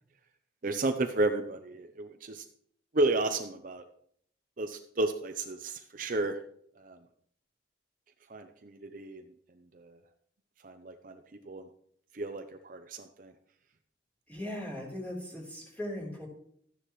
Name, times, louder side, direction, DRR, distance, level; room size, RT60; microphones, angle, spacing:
voice 1, 0.6-2.4 2.9-3.8 4.6-6.4 6.8-7.0 8.3-9.2 9.7-10.0 10.6-11.7 12.1-13.3, right 2 dB, 45° right, 6 dB, 0.6 m, -32 dB
voice 2, 14.3-16.3, left 1 dB, 10° left, -4 dB, 3.7 m, -38 dB
13.0 x 9.9 x 3.1 m, 0.66 s
head